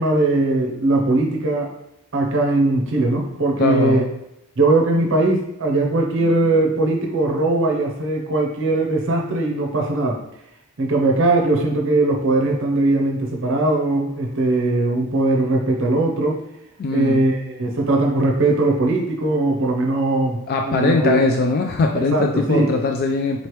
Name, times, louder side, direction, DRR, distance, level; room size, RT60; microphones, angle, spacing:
voice 1, 0.0-1.7 2.1-4.0 4.6-10.2 10.8-16.4 16.9-20.4 20.7-21.2 21.9-22.7, right 2 dB, 60° right, 1 dB, 0.6 m, -20 dB
voice 2, 3.6-4.1 16.8-17.2 20.5-23.5, left 3 dB, 45° left, 3 dB, 0.3 m, -20 dB
4.0 x 3.2 x 3.0 m, 0.86 s
head